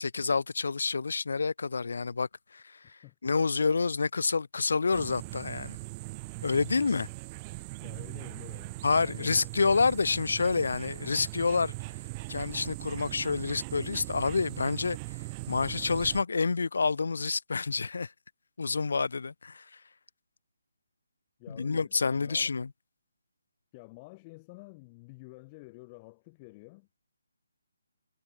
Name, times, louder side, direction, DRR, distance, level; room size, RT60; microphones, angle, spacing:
voice 1, 0.0-5.7 6.4-7.1 8.8-11.7 12.3-15.0 15.5-18.1 18.6-19.6 21.6-22.7, left 4 dB, 65° left, 0.4 m, -28 dB
sound 1, 4.9-16.2, right 26 dB, 25° right, 0.5 m, -40 dB
voice 2, 7.8-9.5 11.0-11.3 21.4-22.5 23.7-26.9, left 26 dB, 25° left, 1.2 m, -50 dB
figure-of-eight pair, 155°, 0 cm